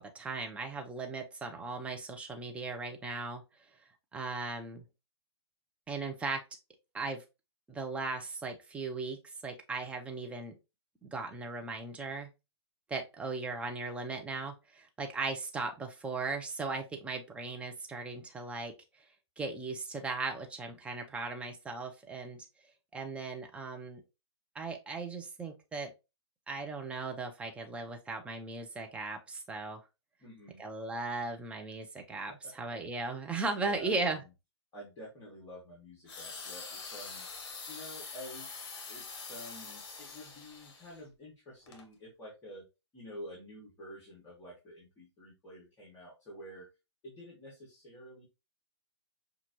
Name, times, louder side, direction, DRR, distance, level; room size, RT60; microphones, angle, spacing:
voice 1, 0.0-3.4 4.1-4.8 5.9-6.4 6.9-7.2 7.7-9.2 9.4-10.6 11.0-12.3 12.9-18.7 19.4-22.4 22.9-24.0 24.5-25.9 26.5-29.8 30.6-34.2, right 3 dB, 10° right, 3 dB, 0.6 m, -37 dB
voice 2, 30.2-30.6 32.3-32.9 33.6-34.2 34.7-37.3 37.7-42.6 42.9-46.7 47.0-48.2, equal, 20° left, -6 dB, 1.9 m, -49 dB
sound 1, 36.1-41.0 41.7-41.8, left 4 dB, 50° left, 1.2 m, -45 dB
5.8 x 2.4 x 2.9 m, 0.27 s
hypercardioid pair, 125°, 15 cm